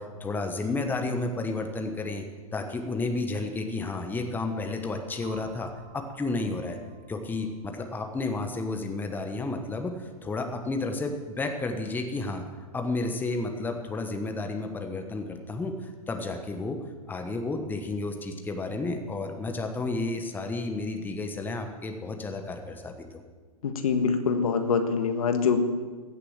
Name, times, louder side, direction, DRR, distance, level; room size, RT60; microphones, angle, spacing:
voice 1, 0.0-2.3 2.5-6.8 7.1-12.4 12.7-16.8 17.1-23.2, left 3 dB, 10° left, 5 dB, 1.1 m, -32 dB
sound 1, 5.2-13.0, right 5 dB, 30° right, 5.3 m, -57 dB
voice 2, 23.6-25.6, left 5 dB, 65° left, 7 dB, 1.5 m, -24 dB
15.5 x 7.0 x 7.3 m, 1.4 s
hypercardioid pair, 115°, 19 cm